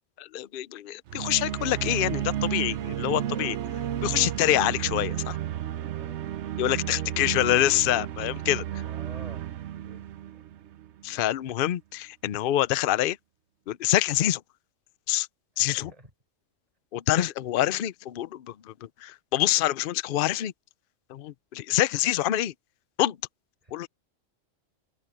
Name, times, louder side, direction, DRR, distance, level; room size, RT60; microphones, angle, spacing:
voice 1, 0.2-3.6 4.0-5.4 6.6-8.8 11.0-13.2 13.7-14.4 15.1-15.3 15.6-15.9 16.9-18.7 19.0-20.5 21.1-22.5 23.0-23.2 23.7-23.9, left 13 dB, 55° left, 0.7 m, -26 dB
sound 1, 1.1-11.1, right 11 dB, 65° right, 0.9 m, -32 dB
voice 2, 5.7-6.3 6.8-7.4 8.8-9.5 9.8-10.4 15.5-16.1 23.6-23.7, right 1 dB, 30° right, 4.5 m, -50 dB
omnidirectional pair, 1.3 m